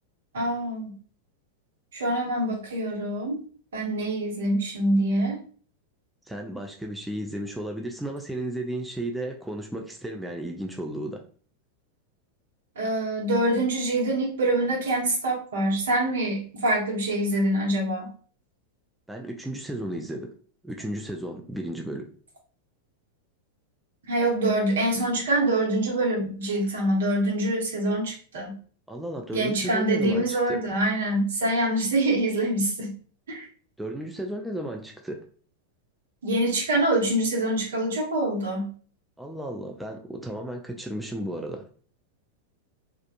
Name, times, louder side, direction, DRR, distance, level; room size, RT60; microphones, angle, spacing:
voice 1, 0.3-0.9 1.9-3.4 3.7-5.4 12.8-18.1 24.0-28.6 29.3-32.9 33.3-33.5 36.2-38.7, right 1 dB, 65° right, -2 dB, 1.1 m, -25 dB
voice 2, 6.3-11.3 19.1-20.3 20.6-22.1 28.9-30.6 33.8-35.3 39.2-41.7, right 1 dB, 5° right, 2 dB, 0.3 m, -34 dB
3.3 x 2.4 x 2.5 m, 0.44 s
figure-of-eight pair, 90°, 0 cm